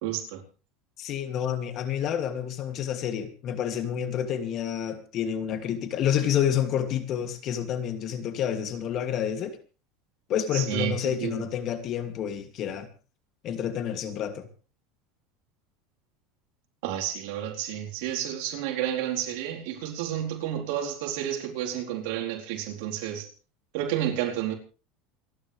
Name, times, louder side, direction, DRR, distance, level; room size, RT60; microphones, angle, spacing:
voice 1, 0.0-0.4 10.5-11.4 16.8-23.3 23.7-24.5, right 11 dB, 75° right, 4.2 m, -31 dB
voice 2, 1.0-9.6 10.3-12.9 13.4-14.5, left 9 dB, 45° left, 2.6 m, -29 dB
28.5 x 11.0 x 3.4 m
supercardioid pair, 130°, 0 cm